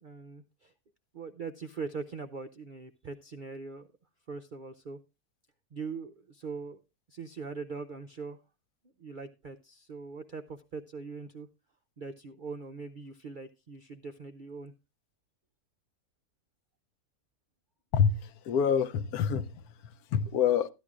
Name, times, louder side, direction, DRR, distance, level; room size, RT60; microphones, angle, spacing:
voice 1, 0.0-0.7 1.1-3.9 4.3-5.0 5.7-6.8 7.1-8.4 9.0-11.5 12.0-14.7, right 4 dB, 70° right, 0.4 m, -41 dB
voice 2, 17.9-20.7, left 7 dB, 75° left, 1.2 m, -27 dB
14.0 x 11.0 x 2.4 m
omnidirectional pair, 1.6 m